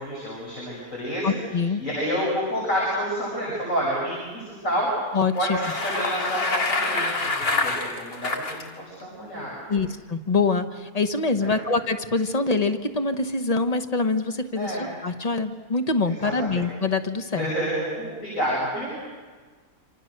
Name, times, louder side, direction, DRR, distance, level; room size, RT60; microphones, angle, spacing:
voice 1, 0.0-1.4 1.8-5.0 5.3-9.8 11.4-11.6 14.6-14.8 16.0-16.6 17.3-19.0, equal, 55° left, -6 dB, 7.8 m, -29 dB
voice 2, 1.2-1.8 5.1-5.6 9.7-17.5, left 4 dB, 30° left, 8 dB, 1.1 m, -25 dB
Bicycle, 5.3-8.6, left 3 dB, 75° left, 2.7 m, -26 dB
26.5 x 26.5 x 6.7 m, 1.5 s
omnidirectional pair, 1.6 m